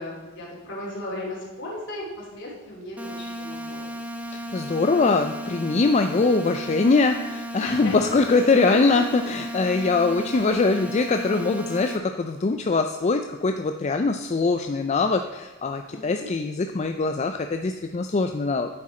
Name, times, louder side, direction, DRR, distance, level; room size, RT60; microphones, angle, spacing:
voice 1, 0.0-3.9 7.6-9.0 15.9-16.3, left 2 dB, 60° left, -4 dB, 3.3 m, -36 dB
sound 1, 3.0-12.0, equal, 5° right, 0.6 m, -35 dB
voice 2, 4.3-18.7, left 3 dB, 35° left, 6 dB, 0.4 m, -22 dB
9.6 x 7.5 x 4.3 m, 1.2 s
head